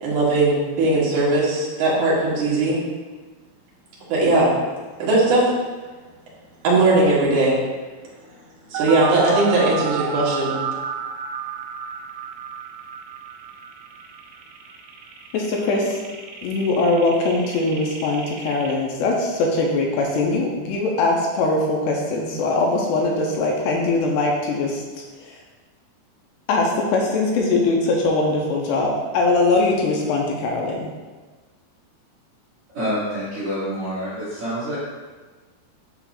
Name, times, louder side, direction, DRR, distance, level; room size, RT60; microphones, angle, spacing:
voice 1, 0.0-2.8 4.1-4.5 5.0-5.4 6.6-7.6 8.7-10.6, right 2 dB, 65° right, -6 dB, 2.2 m, -19 dB
sound 1, 8.7-18.7, right 7 dB, 90° right, 2.9 m, -32 dB
voice 2, 15.3-16.0 16.4-25.4 26.5-30.9, left 2 dB, 85° left, 0 dB, 2.6 m, -21 dB
voice 3, 32.7-34.8, equal, 40° right, -13 dB, 2.4 m, -27 dB
8.0 x 5.7 x 2.4 m, 1.3 s
omnidirectional pair, 5.0 m